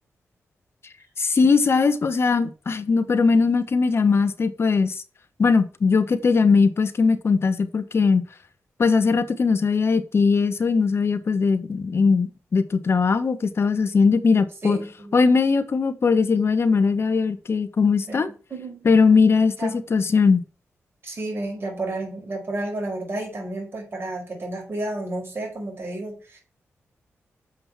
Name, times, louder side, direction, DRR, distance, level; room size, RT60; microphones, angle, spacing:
voice 1, 1.2-5.0 5.4-8.2 8.8-14.8 15.1-18.3 18.8-20.4, left 4 dB, 55° left, 10 dB, 1.2 m, -20 dB
voice 2, 14.6-15.2 17.0-17.1 18.1-18.2 18.5-18.8 19.6-19.8 21.0-26.4, right 2 dB, 50° right, 0 dB, 5.2 m, -31 dB
7.5 x 5.3 x 7.2 m, 0.35 s
cardioid pair, 65°, 5 cm